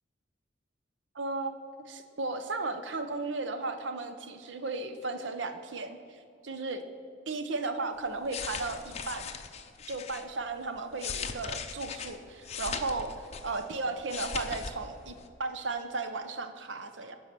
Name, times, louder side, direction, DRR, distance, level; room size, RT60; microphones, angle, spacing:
voice 1, 1.1-1.5 1.8-6.8 7.3-9.3 9.9-17.2, right 3 dB, 75° right, 8 dB, 0.9 m, -35 dB
sound 1, 8.1-10.3 10.8-13.7 14.0-14.8 15.0-15.3, left 6 dB, 35° left, 0.6 m, -39 dB
11.5 x 4.7 x 7.5 m, 2.3 s
head